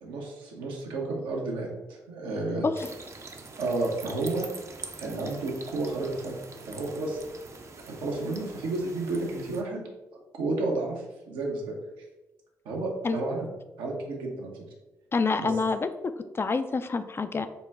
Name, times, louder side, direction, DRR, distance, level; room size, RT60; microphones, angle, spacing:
voice 1, 0.0-2.7 3.6-4.5 5.0-6.4 6.6-7.2 7.9-9.8 10.3-11.7 12.6-13.5 13.8-14.6 15.4-15.5, right 2 dB, 80° right, -1 dB, 0.8 m, -31 dB
sound 1, 2.8-9.6, right 3 dB, 35° right, 0.5 m, -44 dB
voice 2, 15.1-17.5, left 4 dB, 30° left, 10 dB, 0.3 m, -27 dB
4.0 x 2.2 x 3.4 m, 1.1 s
hypercardioid pair, 45°, 8 cm